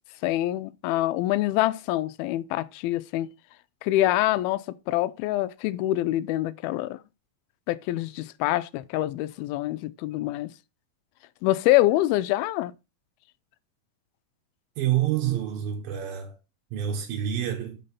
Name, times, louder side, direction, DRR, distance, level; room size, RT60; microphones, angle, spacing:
voice 1, 0.2-3.3 3.8-7.0 7.7-10.5 11.4-12.7, left 15 dB, 85° left, 2.4 m, -25 dB
voice 2, 14.8-16.4 16.7-17.8, right 11 dB, 75° right, 3.0 m, -27 dB
5.9 x 5.3 x 5.5 m
omnidirectional pair, 4.3 m